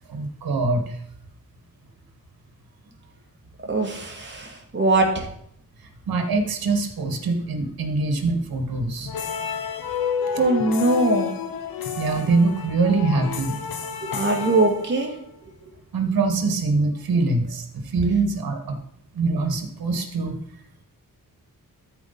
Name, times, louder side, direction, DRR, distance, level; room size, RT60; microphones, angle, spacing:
voice 1, 0.1-1.0 6.1-9.1 12.0-13.6 15.9-17.6 17.9-18.8 19.1-20.4, right 3 dB, 75° right, 6 dB, 1.7 m, -23 dB
voice 2, 3.7-5.3 10.4-11.3 14.0-15.1, right 2 dB, 30° right, 0 dB, 2.4 m, -21 dB
sound 1, 9.1-15.3, left 7 dB, 75° left, 1.0 m, -30 dB
13.0 x 4.8 x 4.1 m, 0.69 s
cardioid pair, 90°, 36 cm